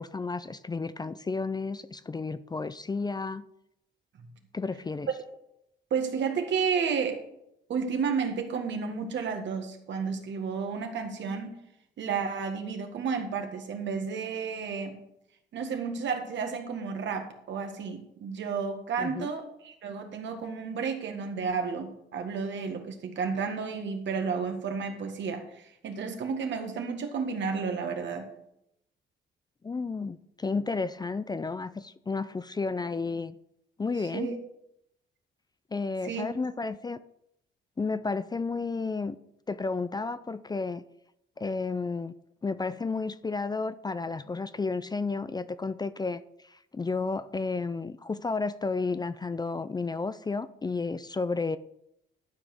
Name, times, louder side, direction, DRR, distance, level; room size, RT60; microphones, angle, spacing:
voice 1, 0.0-3.5 4.5-5.1 19.0-19.3 29.6-33.4 33.8-34.3 35.7-37.0 37.8-39.2 39.5-40.8 41.4-42.1 42.4-51.6, left 4 dB, 20° left, 14 dB, 0.4 m, -32 dB
voice 2, 5.9-7.2 7.7-11.6 12.0-15.0 15.5-28.3 34.0-34.4 36.0-36.3, right 5 dB, 65° right, 5 dB, 1.7 m, -32 dB
12.0 x 5.1 x 6.0 m, 0.79 s
cardioid pair, 90°, 20 cm